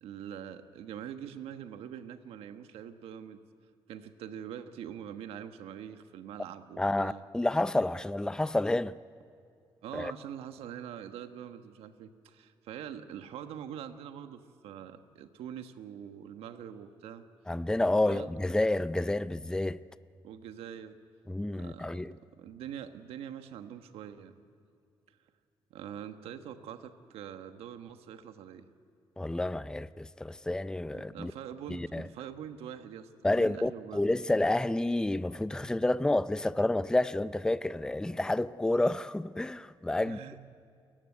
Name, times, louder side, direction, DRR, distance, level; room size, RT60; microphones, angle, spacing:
voice 1, 0.0-3.4 3.9-7.2 9.8-17.3 17.9-18.3 20.2-21.0 21.5-22.0 22.4-24.3 25.7-28.7 30.9-34.1 40.0-40.4, right 9 dB, 85° right, 1.3 m, -44 dB
voice 2, 6.8-8.9 9.9-10.1 17.5-19.8 21.3-22.1 29.2-31.3 31.7-32.1 33.2-40.2, left 2 dB, 5° left, 0.5 m, -29 dB
28.5 x 15.5 x 9.7 m
cardioid pair, 75°, 10 cm